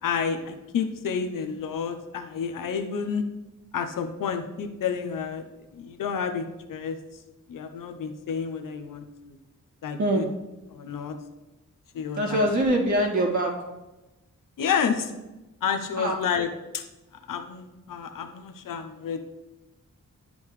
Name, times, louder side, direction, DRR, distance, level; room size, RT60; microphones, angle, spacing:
voice 1, 0.0-3.3 3.7-5.4 5.8-7.0 7.5-9.4 9.8-10.3 10.7-11.2 11.9-12.5 14.6-15.1 15.6-16.8 17.3-19.2, left 6 dB, 80° left, 6 dB, 0.7 m, -30 dB
voice 2, 12.2-13.5 16.0-16.2, right 1 dB, 65° right, -2 dB, 2.1 m, -23 dB
10.5 x 5.2 x 3.2 m, 1.0 s
wide cardioid pair, 105°, 32 cm